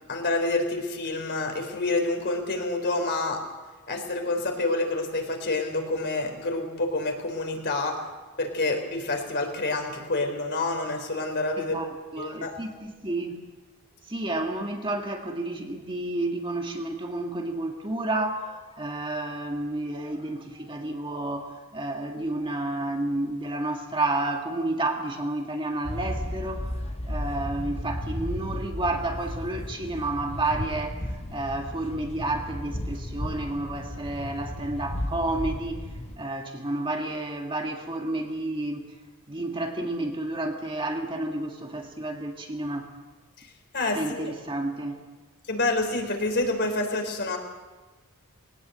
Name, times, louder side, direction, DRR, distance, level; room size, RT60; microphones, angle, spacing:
voice 1, 0.1-3.4 3.9-8.0 8.4-11.8 12.2-12.5 43.4-43.5 43.7-44.3 45.5-47.4, left 2 dB, 50° left, 4 dB, 3.8 m, -28 dB
voice 2, 11.6-13.4 14.1-26.7 27.1-35.8 36.2-38.9 39.3-42.9 43.9-45.1, right 2 dB, 25° right, 3 dB, 1.9 m, -31 dB
sound 1, 25.8-36.2, left 1 dB, 30° left, 1.4 m, -34 dB
21.0 x 18.5 x 7.8 m, 1.3 s
head